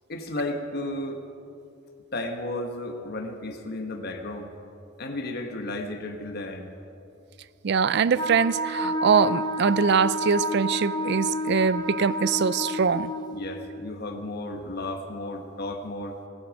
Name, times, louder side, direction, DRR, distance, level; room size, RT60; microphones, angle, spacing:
voice 1, 0.1-1.3 2.1-4.5 5.0-6.7 13.3-16.2, left 1 dB, 55° left, 1.2 m, -33 dB
voice 2, 7.6-13.1, right 6 dB, 60° right, 0.4 m, -23 dB
Wind instrument woodwind instrument, 8.1-13.3, equal, 20° left, 0.9 m, -29 dB
16.5 x 14.5 x 5.2 m
head